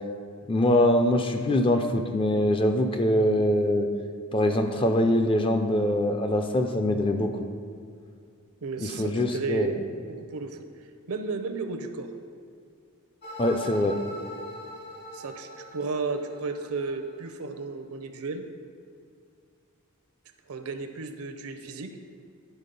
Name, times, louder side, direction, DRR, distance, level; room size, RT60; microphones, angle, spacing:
voice 1, 0.5-3.9 4.3-7.3 8.8-9.7 13.4-14.0, left 1 dB, 25° left, 5 dB, 0.4 m, -23 dB
voice 2, 8.6-9.8 10.1-10.7 11.1-12.1 15.1-18.5 20.5-22.0, right 4 dB, 75° right, 8 dB, 0.6 m, -33 dB
sound 1, 13.2-17.2, left 1 dB, 50° left, 1.4 m, -42 dB
10.5 x 4.0 x 5.3 m, 2.3 s
head